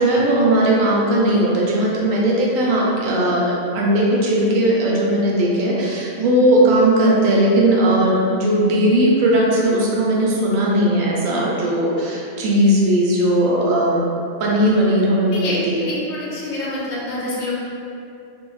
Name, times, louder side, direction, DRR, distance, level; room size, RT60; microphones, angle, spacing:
voice 1, 0.0-14.1 14.4-15.8, right 1 dB, 90° right, -4 dB, 1.0 m, -17 dB
voice 2, 15.3-17.5, left 1 dB, 90° left, -5 dB, 1.1 m, -27 dB
2.6 x 2.1 x 3.0 m, 2.6 s
omnidirectional pair, 1.3 m